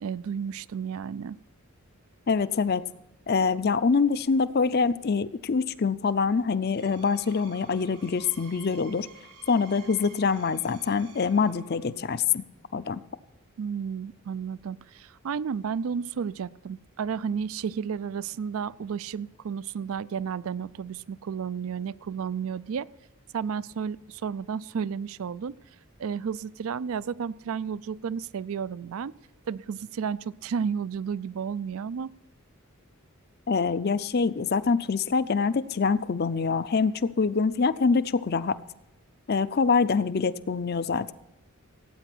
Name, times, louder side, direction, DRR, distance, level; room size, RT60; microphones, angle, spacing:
voice 1, 0.0-1.4 13.6-22.9 23.3-25.5 26.0-29.1 29.5-32.1, right 6 dB, 70° right, 20 dB, 0.4 m, -32 dB
voice 2, 2.3-2.8 3.3-9.1 9.5-12.4 12.7-13.0 33.5-38.6 39.3-41.1, left 5 dB, 45° left, 15 dB, 0.5 m, -25 dB
Screech, 6.5-12.0, right 3 dB, 90° right, 3.2 m, -52 dB
17.0 x 8.9 x 6.0 m, 0.90 s
head